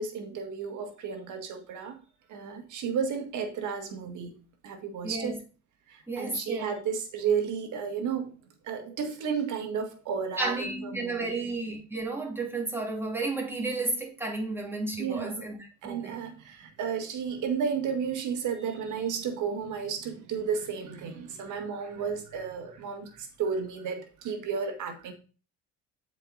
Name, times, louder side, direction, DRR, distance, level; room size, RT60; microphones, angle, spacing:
voice 1, 0.0-2.0 2.3-4.4 4.6-5.4 5.9-11.4 15.0-15.4 15.8-25.1, right 6 dB, 65° right, 1.8 m, -33 dB
voice 2, 5.0-5.4 6.1-6.7 10.4-15.6 15.8-16.2, right 3 dB, 5° right, 2.8 m, -32 dB
7.6 x 4.8 x 4.2 m
supercardioid pair, 75°, 33 cm